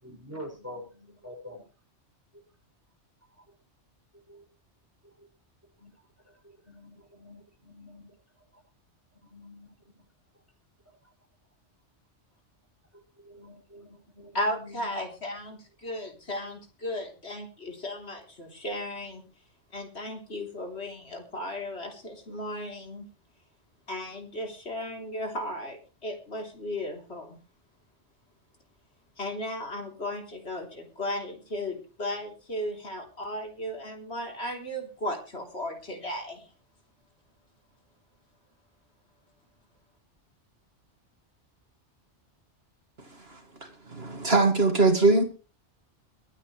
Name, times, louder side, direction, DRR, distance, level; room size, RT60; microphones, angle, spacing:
voice 1, 0.0-1.6 2.3-2.4 4.3-4.4 5.2-5.3 5.8-5.9 6.3-6.4 6.6-8.1 9.2-9.7 12.9-15.0, left 1 dB, 10° right, 6.8 m, -46 dB
voice 2, 14.3-19.2 19.7-23.0 23.9-27.4 29.2-36.4, left 1 dB, 65° left, 3.8 m, -35 dB
voice 3, 43.9-45.2, right 3 dB, 60° right, 2.3 m, -21 dB
23.5 x 9.0 x 3.3 m
omnidirectional pair, 1.2 m